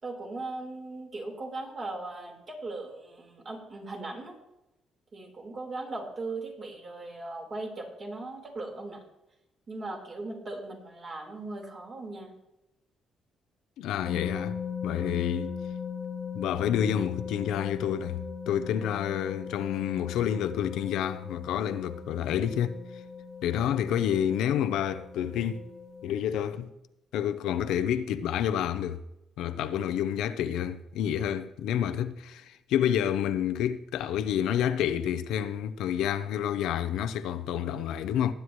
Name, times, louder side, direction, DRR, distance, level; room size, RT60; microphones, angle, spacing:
voice 1, 0.0-4.4 5.1-9.0 9.7-12.3 14.9-15.1, right 2 dB, 45° right, 4.3 m, -38 dB
voice 2, 13.8-15.5 16.3-22.8 23.4-25.6 26.0-26.7 27.1-29.0 29.4-38.3, left 9 dB, 85° left, 0.6 m, -29 dB
sound 1, 14.0-26.2, left 7 dB, 50° left, 0.6 m, -39 dB
19.0 x 9.6 x 3.2 m
cardioid pair, 90°, 0 cm